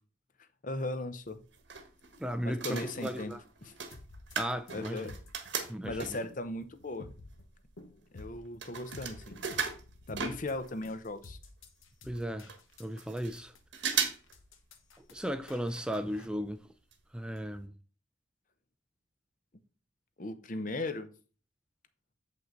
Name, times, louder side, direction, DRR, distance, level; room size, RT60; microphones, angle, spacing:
voice 1, 0.6-1.4 2.4-3.3 3.6-3.7 4.7-5.1 5.8-7.1 8.1-9.4 10.1-11.4 20.2-21.1, left 2 dB, 40° left, 0.7 m, -37 dB
sound 1, 1.3-2.2 2.5-6.4 7.0-7.1 7.3-10.9 11.2-11.3 11.5-11.6 12.1-12.2 12.5-13.4 13.7-14.3 14.6-14.7 15.7-16.0 16.3-16.4 16.9-17.0 17.4-17.5, right 6 dB, 65° right, 1.3 m, -37 dB
voice 2, 2.2-3.4 4.4-5.1 5.7-6.2 12.0-12.5 12.8-13.5 15.0-16.7 17.1-17.7, equal, 5° right, 0.4 m, -36 dB
sound 2, 3.9-16.3, left 2 dB, 85° left, 1.1 m, -51 dB
7.6 x 5.6 x 3.9 m
head